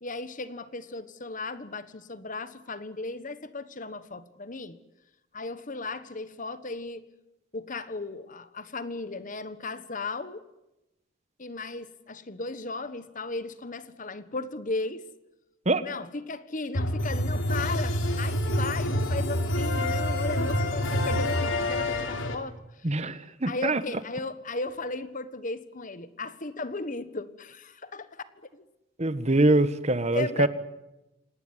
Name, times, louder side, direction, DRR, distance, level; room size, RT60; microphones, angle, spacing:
voice 1, 0.0-4.8 5.3-7.0 7.5-10.4 11.4-15.0 15.8-22.6 22.8-22.9 23.5-28.1 28.5-28.6 30.1-30.5, left 3 dB, 40° left, 13 dB, 1.4 m, -36 dB
sound 1, 16.7-22.3, left 1 dB, 75° left, 3.3 m, -27 dB
voice 2, 22.8-23.8 29.0-30.5, right 2 dB, 35° right, 13 dB, 1.3 m, -24 dB
27.5 x 18.5 x 9.9 m, 0.96 s
head